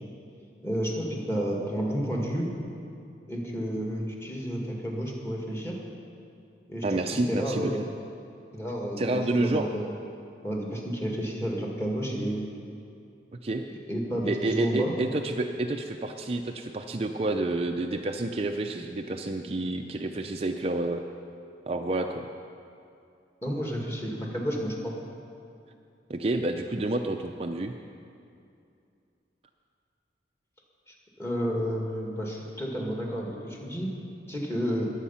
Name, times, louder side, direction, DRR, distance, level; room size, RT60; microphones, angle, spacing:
voice 1, 0.6-2.5 3.3-5.8 6.7-6.8 7.3-7.9 8.5-9.9 10.4-12.5 13.9-14.9 23.4-25.0 30.9-33.9 34.3-34.9, equal, 15° left, -1 dB, 2.0 m, -31 dB
voice 2, 6.8-7.7 9.0-9.7 13.4-13.7 14.2-21.0 21.7-22.3 26.1-27.7, right 2 dB, 35° right, 4 dB, 0.5 m, -29 dB
21.5 x 8.2 x 5.7 m, 2.5 s
head